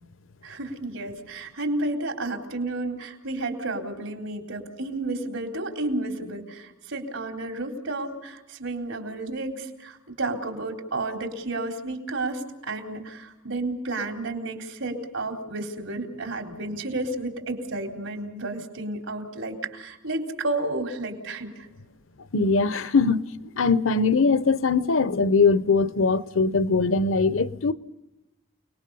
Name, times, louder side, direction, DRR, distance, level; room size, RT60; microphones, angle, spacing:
voice 1, 0.4-21.7, right 2 dB, 90° right, 3.9 m, -31 dB
voice 2, 22.3-23.2 23.6-27.7, left 4 dB, 80° left, 0.8 m, -21 dB
29.5 x 20.0 x 5.5 m
head